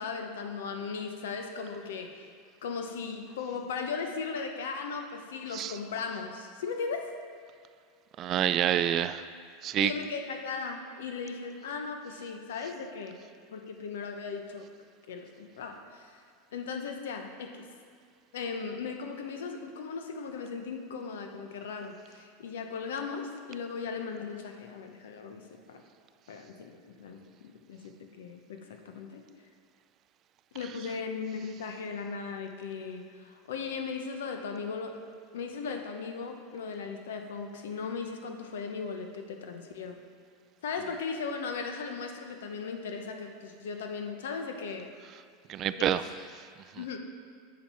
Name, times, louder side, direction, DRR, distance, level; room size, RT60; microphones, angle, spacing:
voice 1, 0.0-2.3 2.6-7.1 9.8-13.2 13.5-14.7 15.1-16.2 16.5-17.6 18.3-25.8 26.3-29.2 30.5-35.0 35.3-40.0 40.6-44.9 45.8-45.9 46.8-47.0, left 5 dB, 90° left, 5 dB, 0.9 m, -37 dB
voice 2, 8.2-9.2 9.6-9.9 45.5-46.0, right 11 dB, 40° right, 13 dB, 0.3 m, -27 dB
7.4 x 7.1 x 4.4 m, 2.1 s
supercardioid pair, 125°, 0 cm